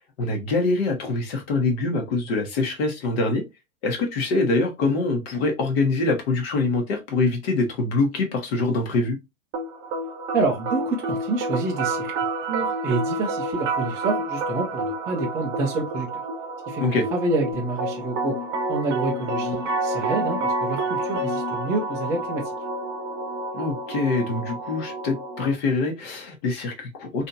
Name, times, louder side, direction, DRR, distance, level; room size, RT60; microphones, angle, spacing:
voice 1, 0.2-3.4 3.8-9.2 16.8-17.0 23.5-27.3, left 3 dB, 45° left, 1.2 m, -24 dB
sound 1, 9.5-25.5, right 2 dB, 30° right, 0.9 m, -29 dB
voice 2, 10.3-12.1 12.5-16.1 16.7-18.4 18.7-22.5, right 2 dB, 10° right, 0.3 m, -27 dB
3.4 x 2.8 x 2.6 m
figure-of-eight pair, 105°, 42 cm